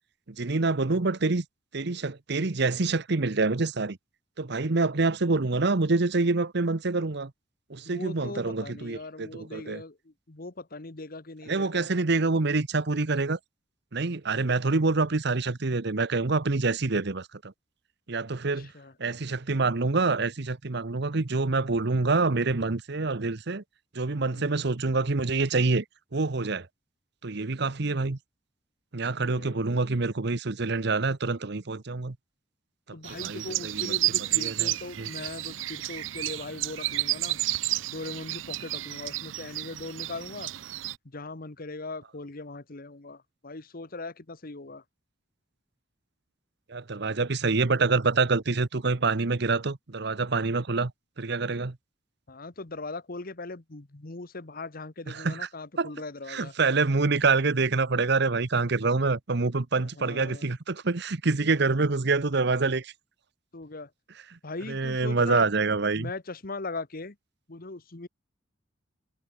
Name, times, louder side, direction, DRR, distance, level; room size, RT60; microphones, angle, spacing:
voice 1, 0.3-1.4 1.7-4.0 4.4-7.3 7.7-9.8 11.5-13.4 13.9-17.5 18.1-18.7 19.0-23.6 23.9-25.8 26.1-26.7 27.2-28.2 28.9-32.2 33.1-34.0 34.3-35.1 46.7-50.9 51.2-51.8 55.1-55.5 55.8-55.9 56.3-62.9 64.3-64.4 64.7-66.1, right 3 dB, 60° right, 1.0 m, -26 dB
voice 2, 7.8-10.0 10.3-11.9 18.6-18.9 24.3-24.5 29.2-29.6 32.9-37.4 37.9-40.5 41.1-44.8 52.3-56.5 59.8-60.5 63.5-63.9 64.4-65.5 66.0-67.1 67.5-68.1, left 3 dB, 50° left, 1.3 m, -39 dB
sound 1, 33.0-41.0, right 16 dB, 90° right, 0.5 m, -31 dB
head